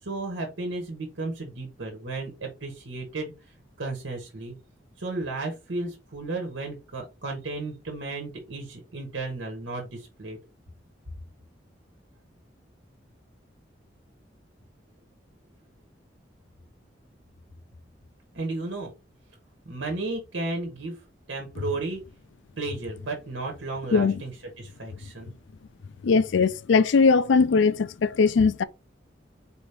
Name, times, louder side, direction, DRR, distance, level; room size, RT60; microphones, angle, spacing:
voice 1, 0.0-4.5 5.0-10.4 18.3-18.9 19.6-21.0 21.3-22.0 22.6-24.3 24.6-25.3, right 2 dB, 85° right, 1.2 m, -34 dB
voice 2, 26.0-28.6, left 4 dB, 75° left, 0.4 m, -20 dB
4.3 x 2.8 x 3.4 m
head